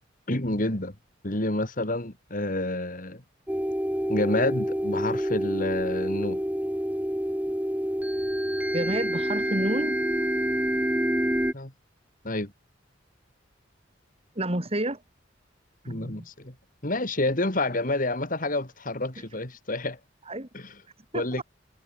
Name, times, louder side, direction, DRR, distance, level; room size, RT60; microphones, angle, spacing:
voice 1, 0.3-0.9 1.2-3.2 4.1-6.4 11.5-11.7 12.2-12.5 15.9-16.5 16.8-20.0 20.5-20.7 21.1-21.4, left 2 dB, 45° left, 2.9 m, -28 dB
sound 1, 3.5-11.5, equal, 10° right, 3.3 m, -27 dB
voice 2, 8.7-10.0 14.4-15.0 15.8-16.3 20.3-20.5 21.1-21.4, right 1 dB, 30° right, 3.8 m, -30 dB
head